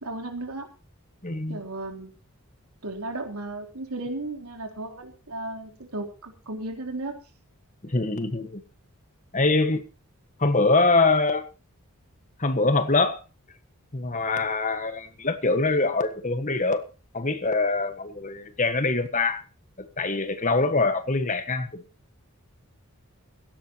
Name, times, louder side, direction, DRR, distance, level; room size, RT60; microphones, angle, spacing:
voice 1, 0.0-0.7 1.5-2.1 2.8-7.2, right 2 dB, 85° right, 3 dB, 3.8 m, -35 dB
voice 2, 1.2-1.6 7.8-8.6 9.3-9.8 10.4-11.4 12.4-13.2 13.9-16.8 17.1-19.4 19.8-21.8, left 3 dB, 35° left, 10 dB, 1.5 m, -24 dB
17.0 x 16.0 x 3.0 m, 0.32 s
head